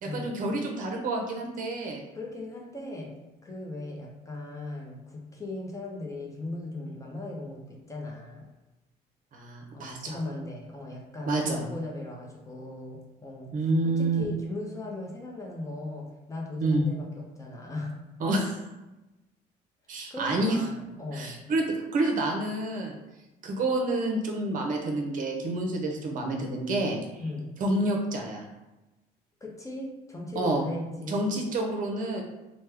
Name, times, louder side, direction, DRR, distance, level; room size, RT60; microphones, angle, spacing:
voice 1, 0.0-2.0 9.3-10.2 11.3-11.6 13.5-14.2 16.6-16.9 18.2-18.6 19.9-20.6 21.1-23.0 23.4-27.0 27.6-28.4 30.4-30.7 31.1-32.2, right 2 dB, 50° right, 2 dB, 0.7 m, -28 dB
voice 2, 2.1-3.1 3.4-8.5 9.7-18.0 20.1-21.4 27.2-27.5 29.4-31.3, left 2 dB, 20° left, -1 dB, 0.6 m, -38 dB
3.1 x 2.1 x 3.3 m, 1.0 s
cardioid pair, 110°, 17 cm